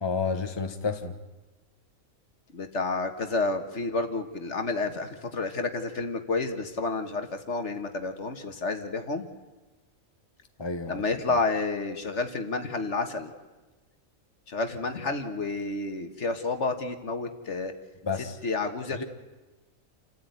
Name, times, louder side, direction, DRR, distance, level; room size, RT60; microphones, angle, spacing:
voice 1, 0.0-1.2 10.6-11.0 18.0-18.4 19.0-19.1, left 4 dB, 20° left, 6 dB, 1.4 m, -30 dB
voice 2, 2.5-9.3 10.9-13.3 14.5-17.7 18.2-19.0, left 3 dB, 55° left, 7 dB, 1.8 m, -30 dB
28.5 x 14.0 x 9.4 m, 1.1 s
omnidirectional pair, 1.4 m